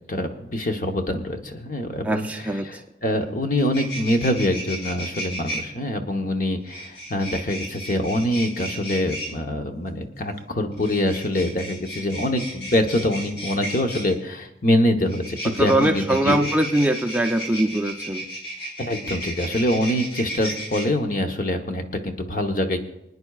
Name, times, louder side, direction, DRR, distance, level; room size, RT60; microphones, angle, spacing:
voice 1, 0.1-16.5 18.8-22.8, left 1 dB, 45° left, 4 dB, 1.0 m, -24 dB
voice 2, 2.0-2.8 15.6-18.3, right 1 dB, 10° right, 4 dB, 0.5 m, -22 dB
sound 1, 3.2-3.3 3.5-5.6 6.7-9.3 10.7-14.1 15.1-20.8, equal, 65° left, 5.2 m, -34 dB
28.0 x 9.6 x 2.4 m, 0.87 s
head